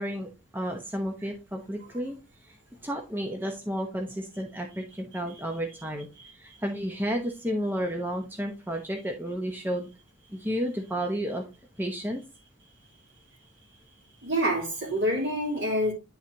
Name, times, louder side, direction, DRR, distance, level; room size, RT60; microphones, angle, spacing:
voice 1, 0.0-2.2 2.4-2.6 2.8-6.1 6.3-9.9 10.3-11.4 11.8-12.2, equal, 10° right, 0.8 m, -32 dB
voice 2, 14.2-15.9, equal, 60° right, 2.8 m, -26 dB
9.9 x 3.9 x 2.9 m
head